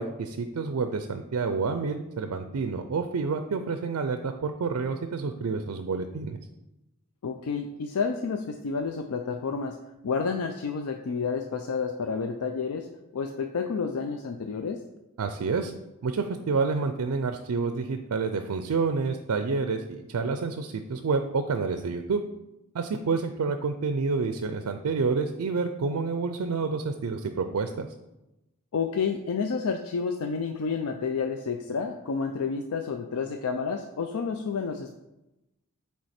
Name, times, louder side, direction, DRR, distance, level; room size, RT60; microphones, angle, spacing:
voice 1, 0.0-6.4 15.2-15.7 16.0-22.2 22.7-27.9, right 4 dB, 80° right, 8 dB, 0.4 m, -28 dB
voice 2, 7.2-9.8 10.0-12.9 13.1-14.8 28.7-34.9, left 5 dB, 80° left, 6 dB, 0.4 m, -30 dB
7.8 x 3.4 x 4.3 m, 0.96 s
head